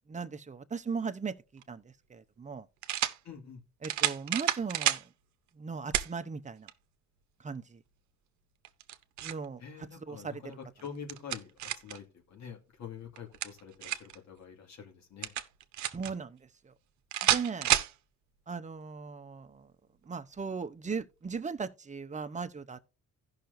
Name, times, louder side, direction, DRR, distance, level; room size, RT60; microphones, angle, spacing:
voice 1, 0.1-2.7 3.8-5.0 5.5-6.7 7.4-7.8 9.2-9.6 10.0-10.6 15.9-16.7 17.2-17.7 18.5-19.7 20.0-22.8, right 5 dB, 25° right, 0.8 m, -38 dB
sound 1, 1.6-1.7 2.8-3.2 3.8-5.1 5.9-6.1 6.7-6.8 8.6-9.5 10.8-12.0 13.2-14.2 15.2-16.1 17.1-17.9, right 12 dB, 70° right, 0.8 m, -30 dB
voice 2, 3.2-3.6 9.6-11.5 11.8-15.3, left 7 dB, 65° left, 2.1 m, -46 dB
16.0 x 5.8 x 2.6 m
cardioid pair, 90°, 30 cm